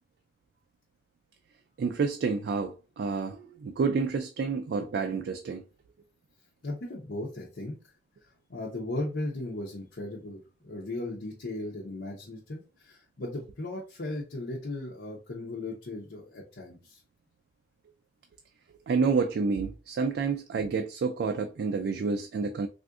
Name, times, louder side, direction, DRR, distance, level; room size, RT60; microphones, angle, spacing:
voice 1, 1.8-5.6 18.9-22.7, right 5 dB, 65° right, 0.3 m, -29 dB
voice 2, 6.6-7.7 8.5-17.0, left 2 dB, 85° left, 0.7 m, -37 dB
3.5 x 2.5 x 2.4 m
head